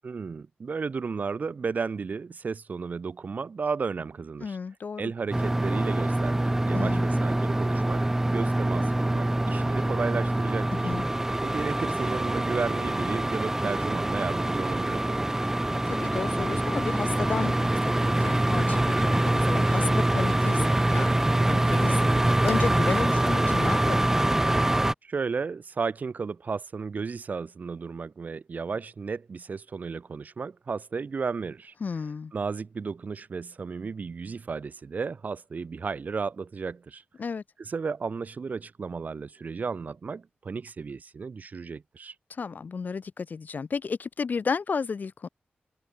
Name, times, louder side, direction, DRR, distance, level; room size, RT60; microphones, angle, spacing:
voice 1, 0.0-4.6 5.0-10.7 11.4-15.3 25.0-31.7 32.3-37.0 37.6-42.1, right 5 dB, 50° right, 1.6 m, -33 dB
voice 2, 4.4-5.1 6.7-7.1 10.7-11.1 15.7-24.1 31.8-32.3 37.2-37.4 42.3-45.3, left 5 dB, 55° left, 4.8 m, -33 dB
sound 1, 5.3-24.9, right 1 dB, 10° right, 1.5 m, -25 dB
wide cardioid pair, 170°, 4 cm